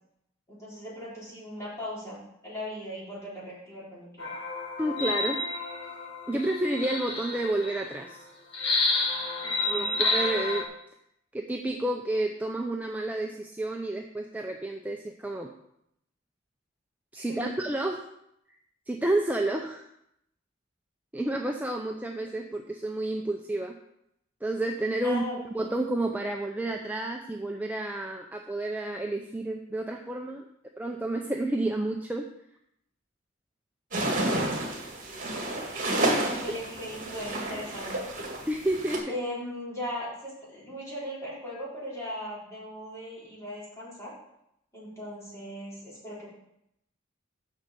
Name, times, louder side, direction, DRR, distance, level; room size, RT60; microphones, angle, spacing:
voice 1, 0.5-4.3 9.4-10.0 17.2-17.6 25.0-25.7 36.2-38.1 39.1-44.1 44.7-46.3, left 1 dB, 15° left, -8 dB, 4.1 m, -38 dB
sound 1, 4.2-7.9 8.5-10.6, left 3 dB, 65° left, 1.3 m, -30 dB
voice 2, 4.8-5.4 6.3-8.3 9.7-10.7 11.3-15.5 17.1-18.0 18.9-19.8 21.1-23.8 24.4-25.2 25.5-30.4 30.8-32.3 38.5-39.1, right 1 dB, 10° right, 2 dB, 0.5 m, -30 dB
sound 2, 33.9-39.0, right 1 dB, 45° right, 2.2 m, -30 dB
6.4 x 6.4 x 6.8 m, 0.79 s
head